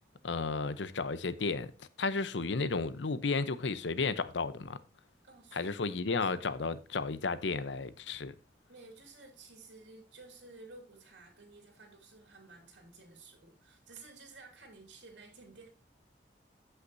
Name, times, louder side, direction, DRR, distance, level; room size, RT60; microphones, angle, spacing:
voice 1, 0.2-1.7 2.0-4.8 5.5-8.3, left 4 dB, 90° left, 0.7 m, -33 dB
voice 2, 5.2-5.8 6.1-6.5 8.7-15.7, right 3 dB, 85° right, 2.7 m, -54 dB
14.0 x 5.8 x 2.6 m
head